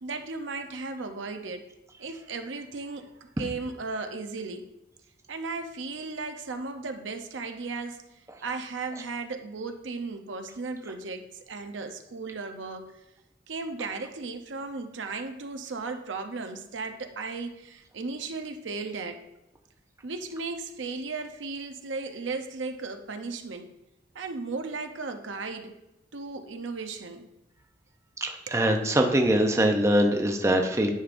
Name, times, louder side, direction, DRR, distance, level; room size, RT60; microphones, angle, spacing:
voice 1, 0.0-1.6 2.0-4.7 5.3-8.1 8.4-12.9 13.5-19.2 20.0-23.7 24.1-25.8 26.1-27.3 28.5-28.6, right 3 dB, 85° right, 6 dB, 0.7 m, -36 dB
voice 2, 28.2-30.9, right 1 dB, 15° right, 3 dB, 0.6 m, -23 dB
9.9 x 5.1 x 2.5 m, 0.93 s
head